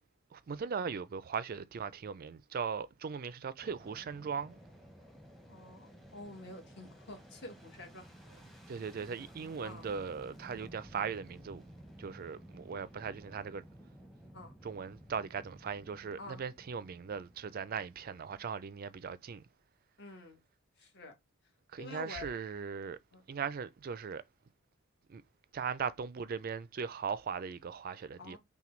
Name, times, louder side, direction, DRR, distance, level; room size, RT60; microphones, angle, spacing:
voice 1, 0.3-4.6 8.7-11.6 12.0-13.6 14.6-19.4 21.7-23.0 23.3-24.2 25.1-25.2 25.5-28.4, right 6 dB, 45° right, 0.4 m, -39 dB
Fixed-wing aircraft airplane, 3.6-18.8, right 1 dB, ahead, 0.7 m, -55 dB
voice 2, 5.5-8.0 8.3-8.6 9.6-9.9 10.6-10.7 14.3-14.5 16.2-16.4 20.0-20.4 20.8-21.1 21.8-22.3 23.1-23.2 28.2-28.4, left 2 dB, 50° left, 1.3 m, -48 dB
5.8 x 2.2 x 3.1 m
head